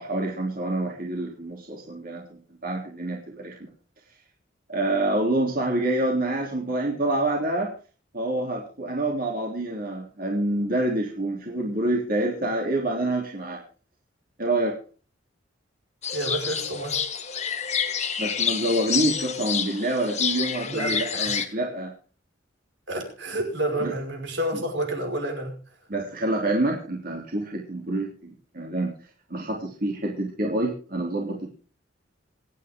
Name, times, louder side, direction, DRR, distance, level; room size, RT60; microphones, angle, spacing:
voice 1, 0.0-3.6 4.7-7.7 8.1-13.6 14.4-14.7 18.2-21.9 23.8-23.9 24.5-24.6 25.9-28.9 29.3-31.5, right 1 dB, 50° right, 3.2 m, -27 dB
sound 1, 16.0-21.5, left 7 dB, 35° left, 1.7 m, -28 dB
voice 2, 16.1-17.0 20.7-21.4 22.9-25.6, right 1 dB, 70° right, 5.5 m, -29 dB
27.0 x 9.6 x 3.7 m
head